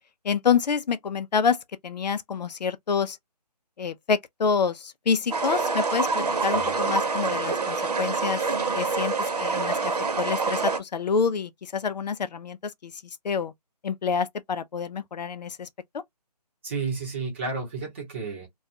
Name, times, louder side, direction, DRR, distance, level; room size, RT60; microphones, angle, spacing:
voice 1, 0.2-1.6 1.8-3.2 3.8-8.5 8.7-13.5 13.8-15.7 15.9-16.0, left 6 dB, 80° left, 0.5 m, -27 dB
Little Waterfall, 5.3-10.8, right 4 dB, 70° right, 0.9 m, -26 dB
voice 2, 16.6-18.5, right 4 dB, 15° right, 0.9 m, -32 dB
2.4 x 2.2 x 2.6 m
hypercardioid pair, 170°, 21 cm